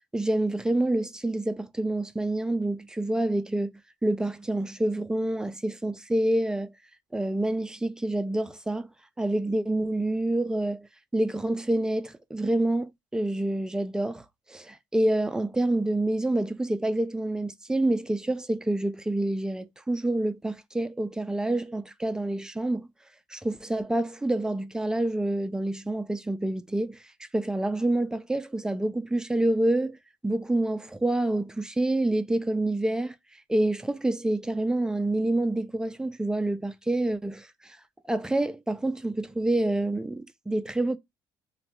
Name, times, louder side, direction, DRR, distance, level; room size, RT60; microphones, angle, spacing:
voice 1, 0.1-3.7 4.0-6.7 7.1-8.9 9.2-10.9 11.1-22.9 23.3-30.0 30.2-33.2 33.5-37.8 38.1-41.0, right 1 dB, 10° right, 0.3 m, -27 dB
3.1 x 2.2 x 2.8 m
cardioid pair, 115°, 9 cm